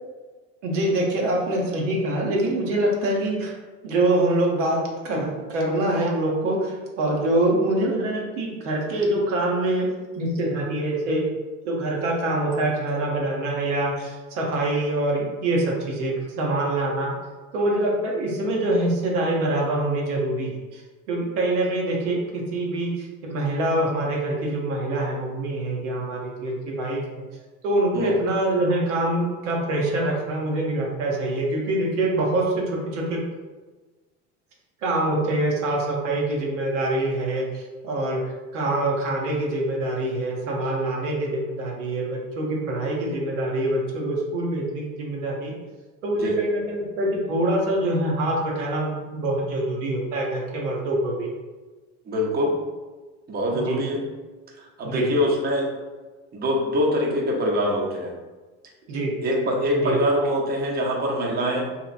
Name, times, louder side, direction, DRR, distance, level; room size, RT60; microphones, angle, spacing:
voice 1, 0.6-3.6 3.8-9.9 10.1-11.3 11.6-17.1 17.5-20.8 21.1-27.0 27.6-33.2 34.8-45.5 46.0-51.3 53.5-53.8 54.8-55.1 58.9-59.1 59.8-60.0, right 1 dB, 80° right, -2 dB, 0.8 m, -25 dB
voice 2, 52.1-52.5 53.3-54.0 54.6-55.7 56.3-58.1 59.2-61.7, equal, 25° right, -2 dB, 0.7 m, -24 dB
2.8 x 2.8 x 2.4 m, 1.3 s
hypercardioid pair, 80°, 36 cm